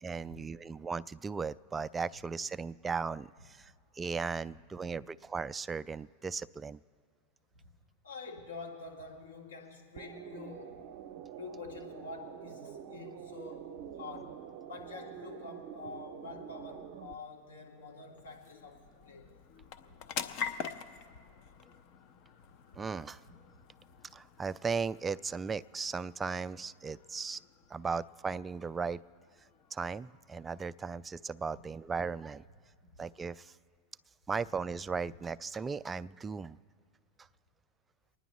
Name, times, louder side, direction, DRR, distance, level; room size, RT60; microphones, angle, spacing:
voice 1, 0.0-3.7 4.0-6.8 22.8-23.2 24.1-27.4 27.7-29.0 29.7-32.4 33.0-33.5 34.3-36.6, right 5 dB, 20° right, 15 dB, 0.3 m, -36 dB
voice 2, 8.0-10.9 11.3-19.3, left 3 dB, 85° left, -1 dB, 1.9 m, -47 dB
sound 1, 10.0-17.1, right 9 dB, 60° right, 0.7 m, -47 dB
sound 2, 16.7-31.6, left 7 dB, 55° left, 0.7 m, -47 dB
29.0 x 10.0 x 3.1 m, 2.1 s
hypercardioid pair, 95°, 0 cm